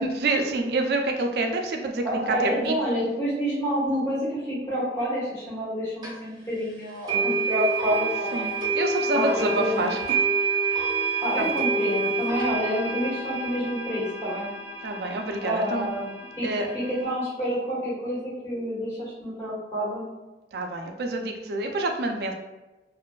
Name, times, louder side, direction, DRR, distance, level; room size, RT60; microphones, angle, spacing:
voice 1, 0.0-2.8 8.3-10.0 11.4-11.5 14.8-15.9 16.4-16.7 20.5-22.3, right 2 dB, 60° right, 3 dB, 0.3 m, -27 dB
voice 2, 2.0-8.5 9.1-9.9 11.2-14.5 15.4-16.5 16.7-20.1, equal, 15° left, -10 dB, 1.1 m, -28 dB
sound 1, 6.0-6.1 7.1-17.1, right 3 dB, 25° right, 0.6 m, -28 dB
2.5 x 2.2 x 2.2 m, 1.1 s
head